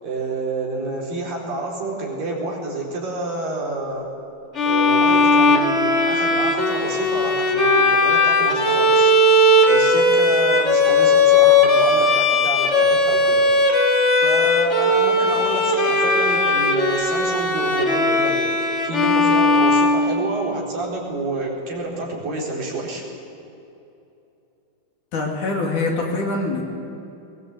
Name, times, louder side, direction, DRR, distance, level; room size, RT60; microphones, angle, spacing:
voice 1, 0.0-4.1 4.7-9.1 9.7-13.5 14.1-18.5 18.8-23.0, right 2 dB, 70° right, -3 dB, 6.0 m, -28 dB
Bowed string instrument, 4.5-20.6, left 2 dB, 25° left, 1.6 m, -17 dB
voice 2, 25.1-26.6, left 3 dB, 60° left, -1 dB, 4.4 m, -24 dB
21.5 x 21.5 x 8.2 m, 2.7 s
omnidirectional pair, 4.1 m